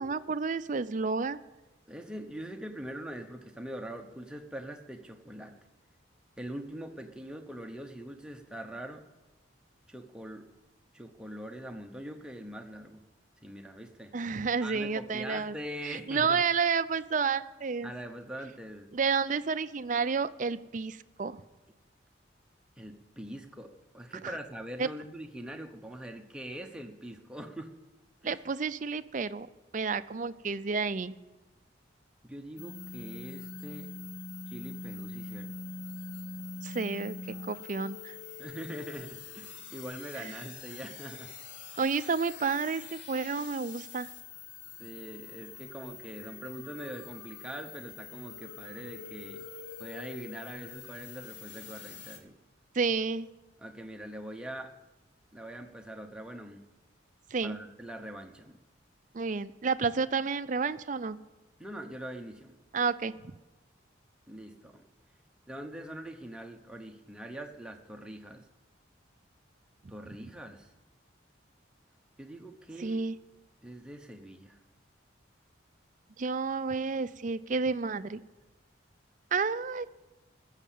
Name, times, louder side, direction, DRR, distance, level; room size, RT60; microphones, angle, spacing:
voice 1, 0.0-1.4 14.1-15.5 15.8-17.9 18.9-21.4 24.2-24.3 24.8-24.9 28.2-29.5 29.7-31.1 36.6-37.2 37.5-38.1 40.2-40.3 41.8-44.1 52.7-53.3 57.3-57.6 59.1-61.2 62.7-63.1 72.8-73.1 76.2-78.2 79.3-79.9, right 5 dB, 40° right, 14 dB, 0.4 m, -30 dB
voice 2, 1.9-5.5 6.4-9.1 9.9-10.5 10.9-13.0 13.4-14.1 14.6-16.4 17.8-18.9 22.8-27.7 32.2-33.9 34.5-35.5 38.4-41.3 44.8-49.4 49.8-52.3 53.6-54.7 55.3-56.6 57.4-58.6 61.6-62.6 64.3-64.8 65.5-68.5 69.9-70.7 72.2-73.0 73.6-74.6, right 1 dB, 5° right, 3 dB, 0.9 m, -43 dB
sound 1, 32.6-52.2, left 4 dB, 65° left, 1.6 m, -44 dB
15.0 x 7.3 x 8.5 m, 1.1 s
head